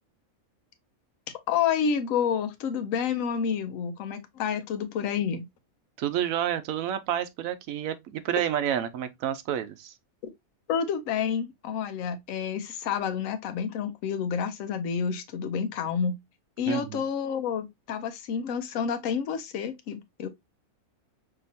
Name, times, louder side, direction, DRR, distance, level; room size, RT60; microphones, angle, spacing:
voice 1, 1.5-5.5 10.7-16.2 16.6-20.3, left 7 dB, 75° left, 1.0 m, -29 dB
voice 2, 6.0-9.9 16.7-17.0, right 10 dB, 80° right, 1.0 m, -29 dB
5.6 x 2.9 x 2.6 m
omnidirectional pair, 1.4 m